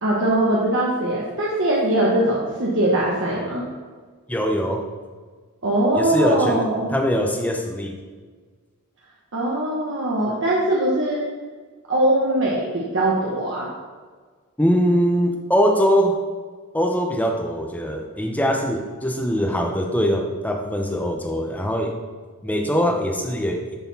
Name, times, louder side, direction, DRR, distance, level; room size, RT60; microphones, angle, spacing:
voice 1, 0.0-3.6 5.6-6.9 9.3-11.2 11.9-13.6, right 1 dB, 55° right, -5 dB, 1.2 m, -21 dB
voice 2, 4.3-4.8 5.9-8.0 14.6-16.2 16.7-21.9 22.4-23.8, equal, 5° left, 2 dB, 0.7 m, -22 dB
10.5 x 4.1 x 4.2 m, 1.5 s
head